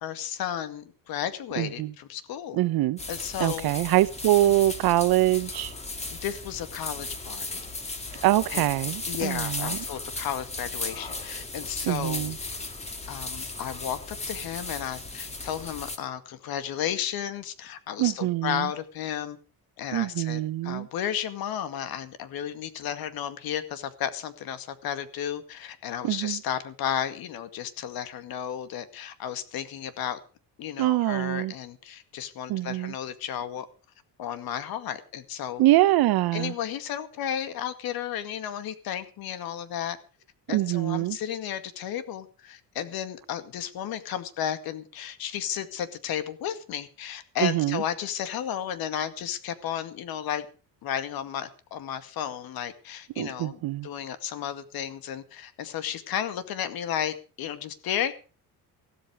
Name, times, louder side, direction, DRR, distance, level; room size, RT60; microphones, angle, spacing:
voice 1, 0.0-2.6 3.1-3.7 6.2-7.7 8.1-8.2 8.5-8.6 9.1-12.3 13.1-19.4 19.8-30.2 30.6-33.7 34.2-35.6 36.3-40.0 40.5-50.5 50.8-58.1, left 9 dB, 70° left, 2.2 m, -33 dB
voice 2, 1.6-1.9 2.5-3.0 3.4-5.7 8.2-9.8 11.8-12.4 18.0-18.7 19.9-20.9 26.0-26.4 30.8-31.5 32.5-32.9 35.6-36.5 40.5-41.2 47.4-47.8 53.2-53.9, right 16 dB, 70° right, 1.0 m, -24 dB
sound 1, 3.0-16.0, left 3 dB, 15° left, 2.1 m, -36 dB
16.0 x 13.0 x 4.9 m
cardioid pair, 155°, 38 cm